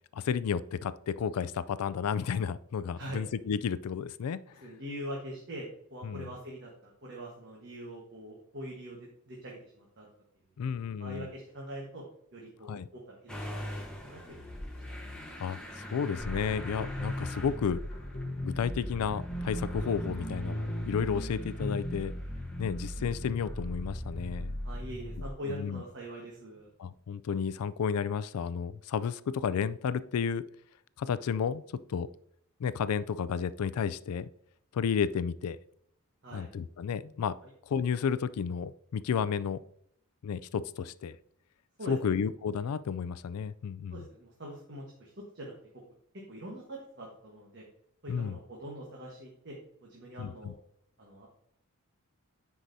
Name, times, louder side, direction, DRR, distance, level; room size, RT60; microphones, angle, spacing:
voice 1, 0.1-4.4 6.0-6.3 10.6-11.3 12.7-12.9 15.4-17.8 18.4-22.1 22.6-24.6 25.4-25.8 26.8-30.4 31.0-31.6 31.9-32.1 32.6-34.3 34.7-35.6 36.3-37.3 37.7-39.6 40.2-41.1 41.9-44.0 48.1-48.4 50.2-50.5, left 7 dB, 85° left, 16 dB, 0.4 m, -32 dB
voice 2, 4.6-10.1 11.0-12.0 12.3-14.5 24.6-26.7 36.2-36.5 37.4-37.5 41.8-42.1 43.9-45.5 46.3-47.6 48.0-49.6 49.8-50.6 51.0-51.3, equal, 50° right, -2 dB, 1.3 m, -43 dB
Motor vehicle (road) / Engine starting, 13.3-24.9, left 1 dB, 5° left, 1.1 m, -43 dB
sound 1, 16.2-25.3, equal, 25° left, 0.9 m, -37 dB
9.8 x 4.9 x 2.7 m, 0.70 s
head